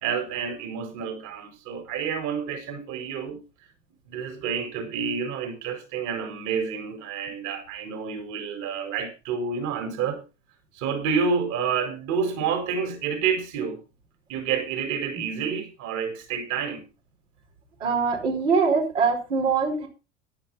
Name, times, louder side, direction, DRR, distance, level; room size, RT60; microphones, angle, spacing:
voice 1, 0.0-3.4 4.1-10.2 10.7-13.8 14.3-16.8, right 6 dB, 55° right, 4.6 m, -29 dB
voice 2, 17.8-19.9, right 5 dB, 85° right, 4.7 m, -23 dB
14.5 x 11.0 x 4.1 m
hypercardioid pair, 80°, 36 cm